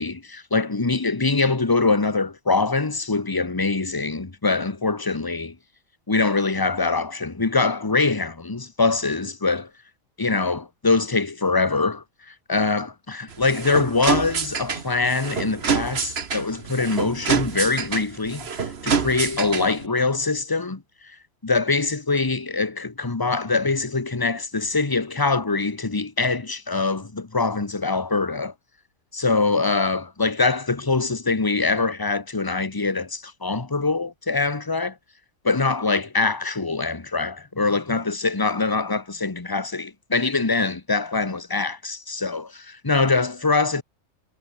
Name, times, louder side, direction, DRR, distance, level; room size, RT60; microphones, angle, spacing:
voice 1, 0.0-5.5 6.1-9.7 10.2-21.1 21.4-28.5 29.1-34.9 35.4-43.8, left 3 dB, 15° left, 1.2 m, -23 dB
sound 1, 13.3-19.9, right 5 dB, 50° right, 1.6 m, -27 dB
omnidirectional pair, 1.5 m